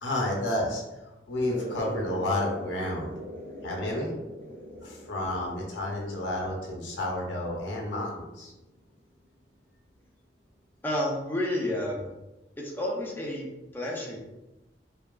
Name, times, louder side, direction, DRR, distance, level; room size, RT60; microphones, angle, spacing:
voice 1, 0.0-3.1 3.6-4.1 4.8-8.5, left 1 dB, 75° left, -1 dB, 0.6 m, -31 dB
sound 1, 1.5-8.6, equal, 50° right, 0.8 m, -42 dB
voice 2, 3.5-4.1 4.5-5.0 10.8-12.0 12.6-13.5 13.7-14.2, left 1 dB, 10° left, -3 dB, 0.4 m, -32 dB
2.7 x 2.4 x 2.2 m, 1.0 s
head